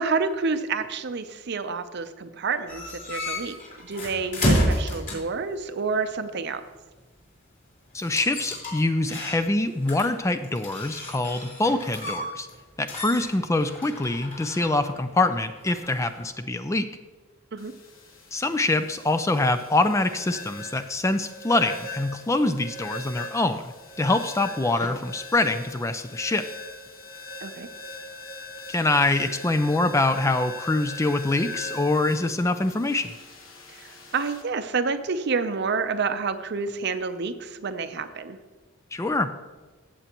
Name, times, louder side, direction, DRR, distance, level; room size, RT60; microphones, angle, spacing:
voice 1, 0.0-6.6 17.5-17.7 27.4-27.7 33.7-38.4, right 4 dB, 55° right, 10 dB, 0.6 m, -29 dB
sound 1, 2.7-5.4 8.0-9.6 9.9-12.6 12.9-16.3, equal, 40° left, 3.6 m, -30 dB
voice 2, 7.9-12.5 12.8-16.9 18.3-26.5 28.7-33.1 38.9-39.3, left 2 dB, 15° left, 10 dB, 0.4 m, -24 dB
sound 2, 17.6-34.4, left 3 dB, 70° left, 1.2 m, -41 dB
15.0 x 7.6 x 3.0 m, 1.3 s
head